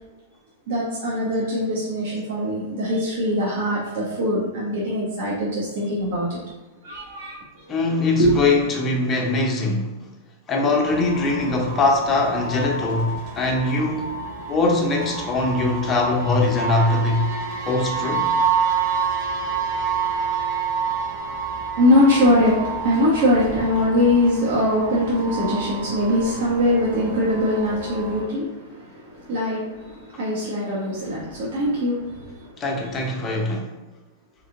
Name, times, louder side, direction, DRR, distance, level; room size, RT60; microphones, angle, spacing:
voice 1, 0.7-6.4 6.8-7.4 8.2-8.3 21.8-32.3, left 1 dB, 70° right, 1.0 m, -22 dB
voice 2, 7.7-9.9 10.5-14.2 14.5-17.3 17.6-18.3 32.6-33.7, left 2 dB, 25° left, 0.7 m, -22 dB
sound 1, 10.8-28.2, right 5 dB, 50° right, 1.4 m, -28 dB
3.6 x 3.2 x 2.8 m
hypercardioid pair, 130°, 0 cm